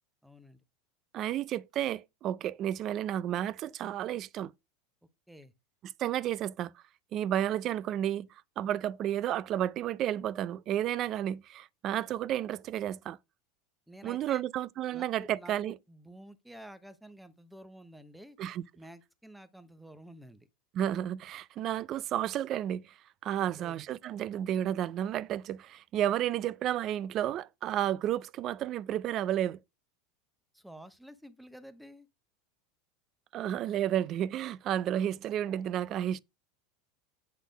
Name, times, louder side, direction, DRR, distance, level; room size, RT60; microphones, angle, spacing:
voice 1, 0.2-0.6 5.3-5.5 13.9-14.4 14.9-18.4 18.7-20.5 23.4-23.8 30.5-32.1, equal, ahead, 0.8 m, -51 dB
voice 2, 1.1-4.5 6.0-6.7 7.1-8.3 8.6-13.2 14.0-15.8 18.4-18.6 20.7-22.9 23.2-29.6 33.3-36.2, right 11 dB, 35° right, 0.4 m, -32 dB
8.2 x 4.1 x 5.1 m
supercardioid pair, 150°, 0 cm